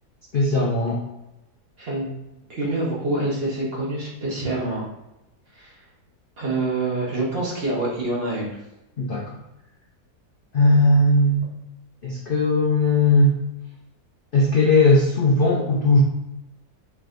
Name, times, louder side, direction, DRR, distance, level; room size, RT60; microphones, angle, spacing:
voice 1, 0.3-1.0 9.0-9.4 10.5-11.5 12.0-13.3 14.3-16.0, left 2 dB, 60° left, -4 dB, 0.5 m, -18 dB
voice 2, 1.8-2.1 2.5-4.9 5.5-5.8 6.4-8.6, right 2 dB, 40° right, -5 dB, 1.1 m, -26 dB
4.6 x 3.2 x 2.5 m, 0.94 s
omnidirectional pair, 1.8 m